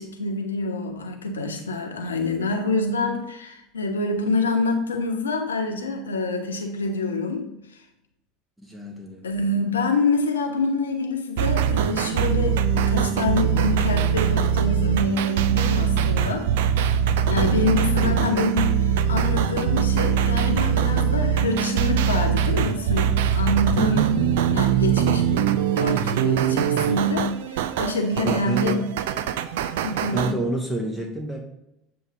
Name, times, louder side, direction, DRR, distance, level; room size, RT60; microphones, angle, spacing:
voice 1, 0.0-7.5 9.2-16.5 17.3-25.5 25.8-28.8 29.8-30.3, left 2 dB, 75° left, 4 dB, 0.9 m, -26 dB
voice 2, 8.6-9.3 18.0-18.5 28.2-28.8 30.1-31.4, right 1 dB, 10° right, 1 dB, 1.0 m, -29 dB
sound 1, 11.4-30.3, right 8 dB, 65° right, 0.3 m, -22 dB
7.7 x 3.1 x 4.8 m, 0.88 s
figure-of-eight pair, 70°, 0 cm